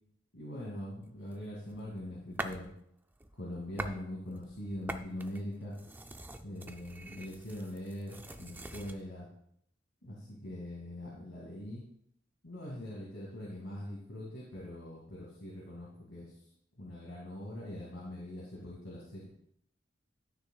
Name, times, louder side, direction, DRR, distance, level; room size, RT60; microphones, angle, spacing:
voice 1, 0.3-2.7 3.4-5.8 6.4-9.3 10.0-11.8 12.4-16.4 16.8-19.3, left 1 dB, 80° left, -5 dB, 2.2 m, -42 dB
sound 1, 1.3-2.7 3.1-4.0 4.3-9.0, right 2 dB, 10° right, 0.4 m, -44 dB
12.5 x 6.4 x 2.3 m, 0.70 s
head